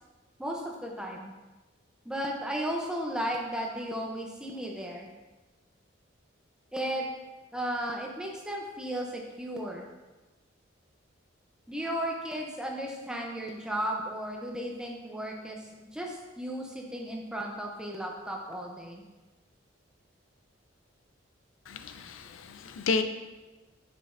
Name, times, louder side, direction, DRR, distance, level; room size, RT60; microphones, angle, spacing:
voice 1, 0.4-1.3 2.1-5.1 6.7-7.1 7.5-9.8 11.7-19.0, right 1 dB, 5° right, 0 dB, 0.6 m, -35 dB
voice 2, 21.7-23.0, left 4 dB, 80° left, 9 dB, 0.4 m, -31 dB
6.5 x 5.8 x 2.6 m, 1.2 s
head